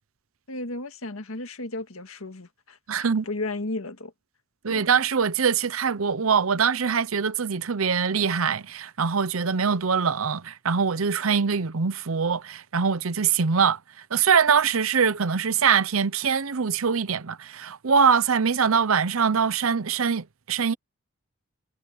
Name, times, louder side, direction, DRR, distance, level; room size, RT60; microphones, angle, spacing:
voice 1, 0.5-4.1 4.7-4.9, left 2 dB, 90° left, 1.9 m, -34 dB
voice 2, 2.9-3.2 4.6-13.8 14.1-20.7, right 6 dB, 85° right, 0.8 m, -23 dB
head